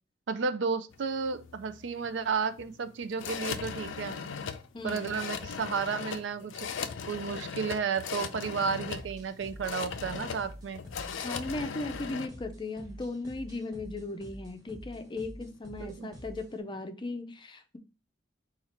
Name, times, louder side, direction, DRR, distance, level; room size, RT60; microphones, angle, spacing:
voice 1, 0.3-4.2 4.8-6.5 7.1-10.8 15.8-16.1, right 5 dB, 65° right, 0.4 m, -32 dB
sound 1, 0.9-12.3, left 6 dB, 85° left, 0.4 m, -39 dB
voice 2, 4.7-5.1 11.2-17.8, left 2 dB, 25° left, 0.5 m, -37 dB
sound 2, 8.9-16.6, equal, 20° right, 1.2 m, -48 dB
4.4 x 2.4 x 4.2 m
head